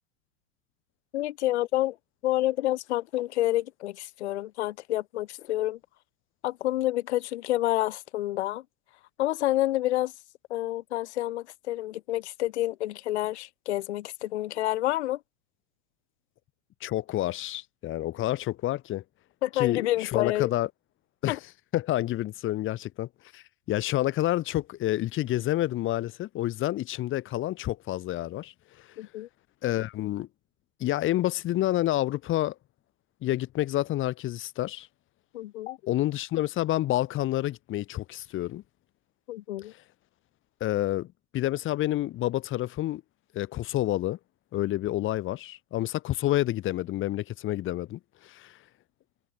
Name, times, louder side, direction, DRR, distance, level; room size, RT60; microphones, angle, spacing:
voice 1, 1.1-2.0 2.2-5.8 6.4-8.6 9.2-10.1 10.5-15.2 19.4-20.5 21.3-21.4 29.0-29.3 35.3-35.8 39.3-39.7, left 15 dB, 55° left, 0.8 m, -28 dB
voice 2, 16.8-19.0 19.6-20.7 21.2-21.4 21.7-23.1 23.3-28.5 29.6-30.3 30.8-32.5 33.2-34.9 35.9-38.6 40.6-41.1 41.3-43.0 43.3-44.2 44.5-48.5, left 15 dB, 30° left, 2.9 m, -28 dB
figure-of-eight pair, 95°, 41 cm